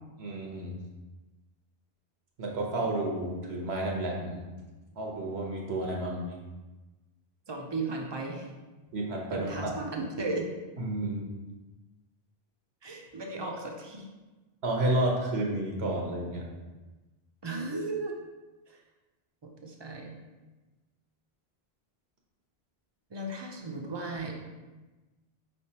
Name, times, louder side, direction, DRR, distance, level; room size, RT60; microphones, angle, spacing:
voice 1, 0.2-0.8 2.4-4.5 5.0-6.4 8.9-9.5 10.8-11.2 14.6-16.4, right 1 dB, 80° right, -1 dB, 1.1 m, -31 dB
voice 2, 7.5-8.5 9.3-10.5 12.8-14.1 17.4-18.2 18.7-18.8 19.4-20.1 23.1-24.3, right 2 dB, 40° right, 1 dB, 0.4 m, -35 dB
4.9 x 3.3 x 2.8 m, 1.2 s
omnidirectional pair, 1.1 m